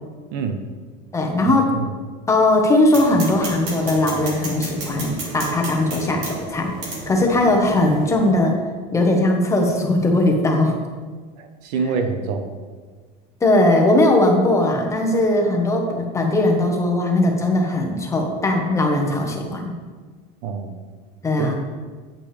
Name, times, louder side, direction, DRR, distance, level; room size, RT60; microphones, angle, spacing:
voice 1, 0.3-0.6 1.5-1.9 11.4-12.5 20.4-20.8 21.4-21.5, right 5 dB, 80° right, 7 dB, 1.0 m, -26 dB
voice 2, 1.1-1.7 2.3-6.7 7.1-8.6 8.9-10.7 13.4-19.7 21.2-21.5, left 1 dB, 15° left, 1 dB, 1.2 m, -19 dB
sound 1, 2.9-8.3, right 1 dB, 55° right, 2.5 m, -32 dB
8.7 x 8.5 x 3.4 m, 1.5 s
cardioid pair, 145°, 21 cm